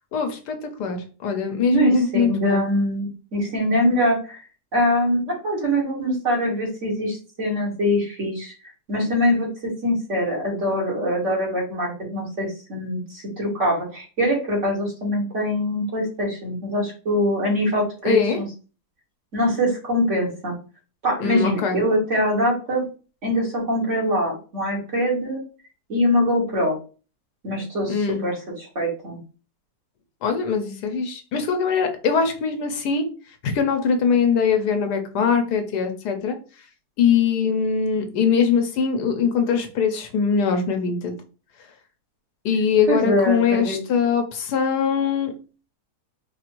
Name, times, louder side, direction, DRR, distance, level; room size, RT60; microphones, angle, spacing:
voice 1, 0.1-2.7 18.0-18.4 21.2-21.8 27.9-28.2 30.2-33.0 33.4-36.4 37.0-41.1 42.4-45.3, left 6 dB, 85° left, 6 dB, 1.4 m, -22 dB
voice 2, 1.7-3.0 3.3-4.4 4.7-8.5 8.9-18.5 19.3-20.5 21.0-22.8 23.2-25.4 25.9-26.8 27.4-29.2 42.9-43.8, equal, 45° right, -3 dB, 2.0 m, -23 dB
4.5 x 2.6 x 4.5 m, 0.35 s
omnidirectional pair, 1.7 m